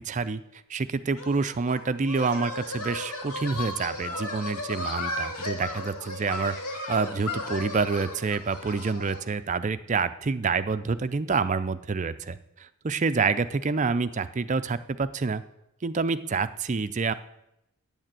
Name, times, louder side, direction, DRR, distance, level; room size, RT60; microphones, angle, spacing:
voice 1, 0.0-15.4 15.8-17.1, right 4 dB, 35° right, 12 dB, 0.4 m, -28 dB
sound 1, 1.1-9.3, left 2 dB, 85° left, 2.2 m, -35 dB
9.2 x 8.8 x 7.5 m, 0.86 s
head